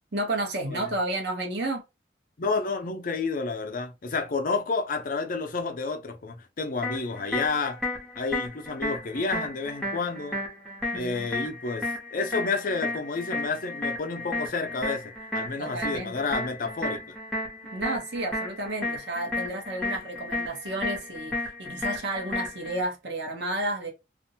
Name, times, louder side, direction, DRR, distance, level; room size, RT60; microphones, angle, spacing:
voice 1, 0.1-1.8 10.9-11.3 15.6-16.4 17.7-23.9, right 1 dB, 70° right, 0.9 m, -32 dB
voice 2, 2.4-7.8 8.2-10.4 10.9-17.1, left 4 dB, 50° left, 0.5 m, -30 dB
sound 1, 6.8-22.8, left 2 dB, 5° left, 0.8 m, -33 dB
2.5 x 2.1 x 2.7 m
head